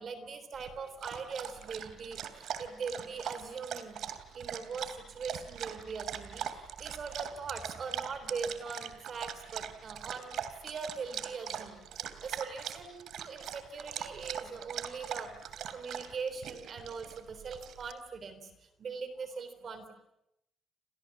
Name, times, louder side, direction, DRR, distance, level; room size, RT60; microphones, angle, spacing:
voice 1, 0.0-19.9, right 5 dB, 35° right, 11 dB, 3.5 m, -41 dB
Dog, 0.5-17.9, right 9 dB, 60° right, 3.0 m, -41 dB
30.0 x 27.5 x 7.3 m, 0.83 s
cardioid pair, 175°, 0 cm